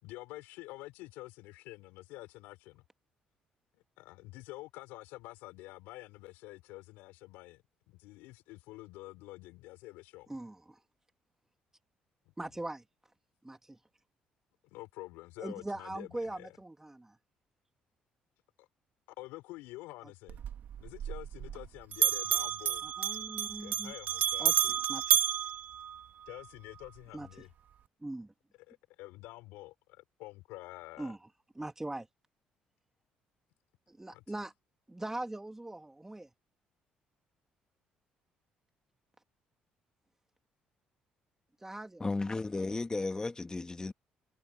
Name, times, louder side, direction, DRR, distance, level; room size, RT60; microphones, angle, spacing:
voice 1, 0.0-2.8 3.7-10.3 12.2-12.3 14.6-16.6 18.6-18.7 19.2-20.4 20.8-22.8 23.6-24.8 26.3-27.5 28.7-31.1 34.1-34.2, left 20 dB, 85° left, 5.0 m, -48 dB
voice 2, 10.3-10.8 12.4-12.8 13.4-13.8 15.4-17.2 22.8-23.9 24.4-24.5 24.9-25.2 27.1-27.3 28.0-28.3 31.0-31.2 31.6-32.1 33.9-34.5 34.9-36.3 41.6-42.0, right 2 dB, 15° right, 2.2 m, -41 dB
Bell, 20.3-21.7 21.9-26.4, right 10 dB, 65° right, 1.7 m, -31 dB
voice 3, 42.0-43.9, left 3 dB, 20° left, 1.7 m, -34 dB
supercardioid pair, 65°, 3 cm